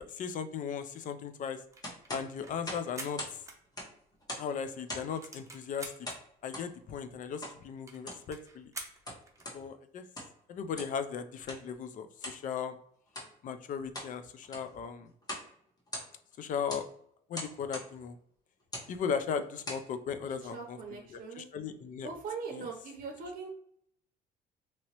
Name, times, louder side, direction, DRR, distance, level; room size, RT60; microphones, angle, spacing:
voice 1, 0.1-1.6 2.1-3.2 4.4-5.9 6.4-8.7 9.5-10.0 10.5-12.8 13.4-15.1 16.4-16.8 17.3-18.2 18.9-20.8 21.1-22.1 22.6-22.7, left 7 dB, 50° left, 9 dB, 0.4 m, -37 dB
sound 1, 1.6-4.2 4.6-4.7 4.9-6.2 6.8-6.9 7.1-7.2 7.4-7.5 7.9-9.5, right 3 dB, 20° right, 0.7 m, -47 dB
sound 2, 1.8-3.4 3.6-4.5 4.9-5.2 6.0-6.7 7.4-7.6 7.9-8.3 8.8-9.6 10.0-10.4 10.7-11.0 11.5-11.6 12.2-12.4 13.1-13.3 13.7-14.1 14.4-14.7 15.2-15.5 15.8-16.3 16.7-16.9 17.3-17.9 18.6-18.9 19.4-19.9, left 1 dB, 20° left, 1.1 m, -41 dB
voice 2, 20.4-21.5 22.0-23.5, right 5 dB, 50° right, 0 dB, 0.7 m, -41 dB
3.0 x 2.8 x 2.9 m, 0.68 s
cardioid pair, 110°, 17 cm